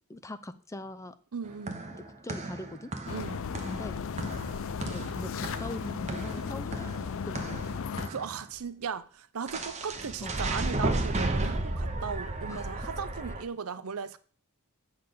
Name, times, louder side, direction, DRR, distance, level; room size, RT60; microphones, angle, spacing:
voice 1, 0.1-1.2 1.9-2.9 3.6-4.0 4.8-6.9 7.3-7.7 10.2-10.3 12.5-12.9, left 1 dB, 15° left, 0.5 m, -42 dB
voice 2, 1.3-1.8 3.1-3.5 8.1-14.2, right 6 dB, 70° right, 0.6 m, -37 dB
sound 1, 1.4-8.4 9.5-13.4, right 2 dB, 30° right, 0.8 m, -34 dB
sound 2, 3.1-8.1, left 6 dB, 65° left, 0.5 m, -35 dB
8.1 x 4.0 x 6.8 m
head